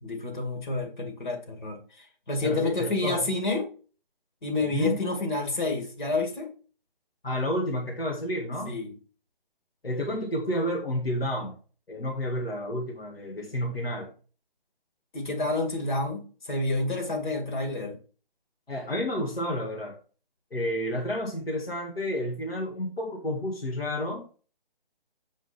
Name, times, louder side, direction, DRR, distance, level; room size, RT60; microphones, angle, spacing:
voice 1, 0.0-3.7 4.4-6.5 8.7-8.9 15.1-17.9, left 2 dB, 55° left, 1 dB, 2.3 m, -29 dB
voice 2, 2.4-3.2 4.7-5.0 7.2-8.8 9.8-11.5 11.9-14.1 18.7-20.0 20.5-24.2, equal, 85° left, 0 dB, 2.1 m, -30 dB
7.8 x 5.0 x 4.2 m, 0.38 s
figure-of-eight pair, 155°, 29 cm